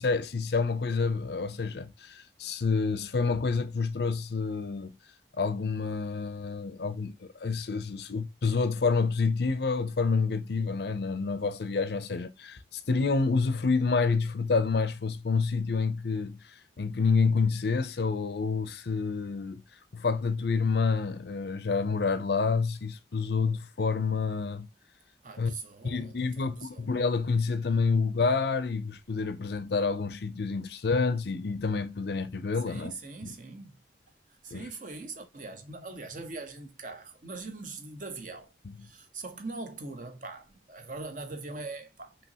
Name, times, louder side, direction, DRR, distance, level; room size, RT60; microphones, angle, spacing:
voice 1, 0.0-4.9 5.4-16.4 16.8-19.6 19.9-24.7 25.4-25.5 25.8-32.9 33.2-33.3 34.5-34.7, left 4 dB, 60° left, 0.5 m, -28 dB
voice 2, 25.2-26.9 32.7-33.8 34.3-38.5 38.8-42.2, right 3 dB, 45° right, 0.8 m, -42 dB
5.5 x 2.9 x 2.8 m
head